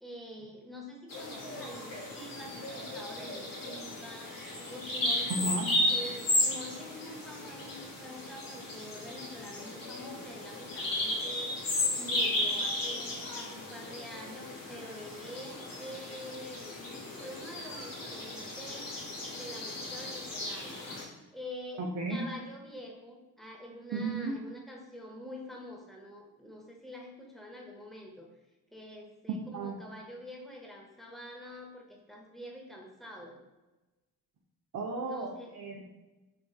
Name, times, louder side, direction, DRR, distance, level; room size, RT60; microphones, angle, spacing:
voice 1, 0.0-5.6 5.9-16.8 17.2-18.9 19.3-20.8 21.3-21.8 22.1-28.3 28.7-33.4 35.0-35.5, equal, ahead, -1 dB, 0.7 m, -46 dB
Bird vocalization bird call bird song, 1.1-21.0, left 1 dB, 50° left, 1.0 m, -35 dB
voice 2, 5.3-5.7 18.0-18.1 21.8-22.2 23.9-24.4 29.5-29.8 34.7-35.9, right 2 dB, 40° right, -1 dB, 0.5 m, -34 dB
3.2 x 2.5 x 2.3 m, 1.1 s
hypercardioid pair, 40°, 44 cm